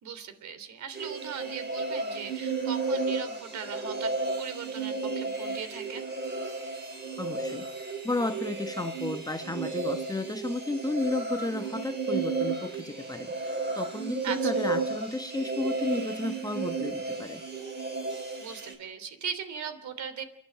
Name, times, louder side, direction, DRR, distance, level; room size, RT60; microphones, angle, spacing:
voice 1, 0.0-4.1 4.4-6.1 14.2-14.5 18.4-20.2, right 7 dB, 55° right, 12 dB, 3.3 m, -38 dB
sound 1, 0.9-18.7, right 3 dB, 30° right, 5.7 m, -33 dB
voice 2, 7.2-17.4, left 2 dB, 10° left, 7 dB, 1.1 m, -33 dB
29.0 x 11.5 x 8.8 m, 0.80 s
supercardioid pair, 80°, 34 cm